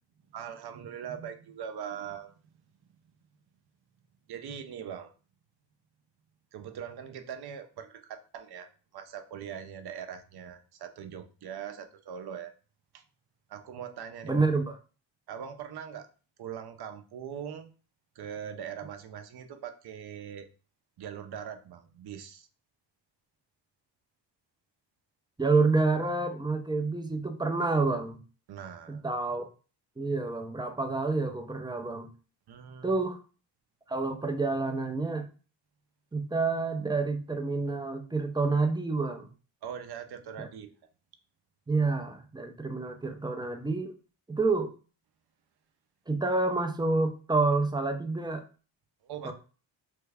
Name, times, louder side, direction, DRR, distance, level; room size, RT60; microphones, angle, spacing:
voice 1, 0.3-2.3 4.3-5.1 6.5-8.7 8.9-12.5 12.9-13.0 13.5-14.5 15.3-16.1 16.4-17.7 18.2-20.5 21.0-22.5 28.5-29.0 32.5-33.0 39.6-40.7 49.0-49.3, right 8 dB, 55° right, 8 dB, 0.6 m, -41 dB
voice 2, 14.2-14.8 25.4-28.2 28.9-29.4 30.0-32.1 32.8-33.2 33.9-35.3 36.1-39.3 40.4-40.5 41.7-43.9 44.3-44.7 46.1-48.4 49.2-49.3, right 3 dB, 10° right, 6 dB, 0.4 m, -28 dB
3.3 x 2.3 x 3.3 m, 0.37 s
cardioid pair, 85°, 46 cm